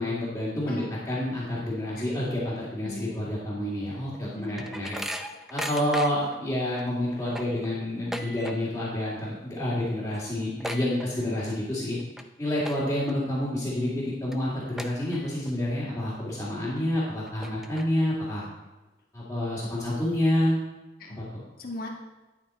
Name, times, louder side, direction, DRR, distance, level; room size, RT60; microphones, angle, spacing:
voice 1, 0.0-5.0 5.5-12.0 12.4-18.4 19.1-20.6 21.1-21.4, left 1 dB, 15° left, -11 dB, 2.3 m, -28 dB
voice 2, 0.6-1.0 2.0-2.1 2.8-3.2 4.3-4.8 21.0-21.2 21.6-21.9, left 1 dB, 55° left, -1 dB, 1.4 m, -39 dB
sound 1, 3.9-6.4 6.8-6.9 7.2-8.9 9.1-9.5 9.8-9.9 10.1-11.5 12.0-12.2 12.6-13.1 13.6-13.7 14.3-14.4 14.8-15.5 15.9-16.0 16.8-16.9 17.2-18.1, equal, ahead, 0.5 m, -37 dB
11.0 x 6.0 x 4.3 m, 1.1 s
head